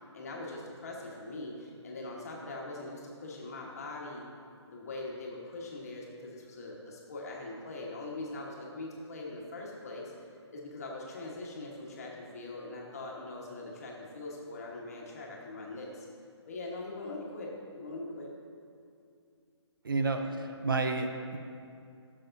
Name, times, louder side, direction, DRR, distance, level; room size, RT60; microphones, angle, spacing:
voice 1, 0.1-4.2 4.7-10.1 10.5-16.1 16.5-18.3 20.2-20.4, left 2 dB, 30° left, -3 dB, 1.4 m, -42 dB
voice 2, 19.8-21.4, right 3 dB, 45° right, 5 dB, 0.6 m, -30 dB
16.0 x 7.0 x 2.7 m, 2.4 s
hypercardioid pair, 175°, 15 cm